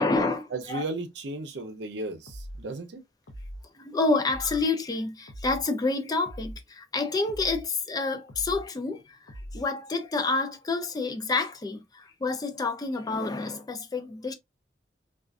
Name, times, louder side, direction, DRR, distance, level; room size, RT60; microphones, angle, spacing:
voice 1, 0.0-0.8 3.7-14.3, left 3 dB, 20° left, 0.4 m, -28 dB
voice 2, 0.5-3.0, right 2 dB, 75° right, 0.6 m, -35 dB
sound 1, 2.3-2.7 3.3-3.7 4.3-4.7 5.3-5.7 6.2-6.6 7.3-7.7 8.3-8.7 9.3-9.7, equal, 80° left, 0.6 m, -41 dB
2.4 x 2.4 x 2.2 m
head